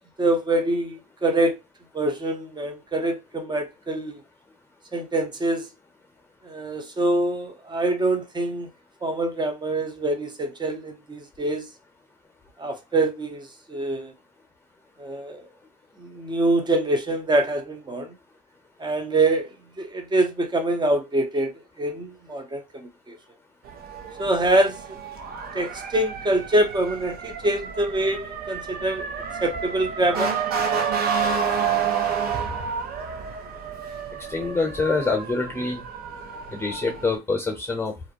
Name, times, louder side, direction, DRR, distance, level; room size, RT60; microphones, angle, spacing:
voice 1, 0.2-1.6 1.9-4.2 4.9-5.7 6.4-8.7 9.0-11.7 12.6-14.1 15.0-15.5 16.0-18.1 18.8-19.5 19.8-21.5 21.8-23.1 24.2-24.8 25.5-29.0 29.4-30.3, right 1 dB, 20° right, 0.8 m, -25 dB
Motor vehicle (road) / Siren, 23.6-37.2, right 6 dB, 50° right, 0.7 m, -30 dB
voice 2, 34.2-35.9 36.5-37.9, left 3 dB, 10° left, 0.9 m, -26 dB
2.5 x 2.1 x 2.7 m
hypercardioid pair, 75°, 21 cm